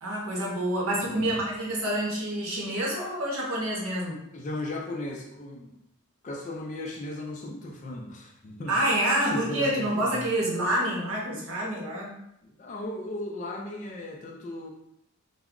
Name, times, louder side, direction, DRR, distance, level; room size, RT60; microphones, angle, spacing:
voice 1, 0.0-4.2 8.7-12.1, right 1 dB, 70° right, -3 dB, 0.8 m, -27 dB
voice 2, 1.1-1.5 4.3-5.8 6.2-8.8 9.3-10.3 12.4-14.7, left 1 dB, 35° left, 1 dB, 0.3 m, -36 dB
2.2 x 2.0 x 3.6 m, 0.79 s
head